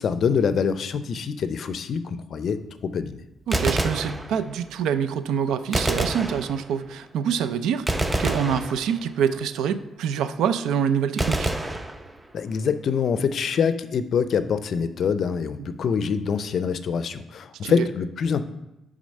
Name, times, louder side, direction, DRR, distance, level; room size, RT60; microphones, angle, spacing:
voice 1, 0.0-3.2 12.3-18.4, left 6 dB, 60° left, 12 dB, 0.4 m, -25 dB
Gunshot gunfire, 3.4-4.7 5.7-7.0 7.9-9.3 11.2-12.5, right 1 dB, 15° right, 0.6 m, -27 dB
voice 2, 3.5-11.5 15.6-15.7 17.6-17.9, right 8 dB, 85° right, 12 dB, 0.4 m, -26 dB
6.4 x 3.8 x 5.3 m, 0.92 s
cardioid pair, 90°, 0 cm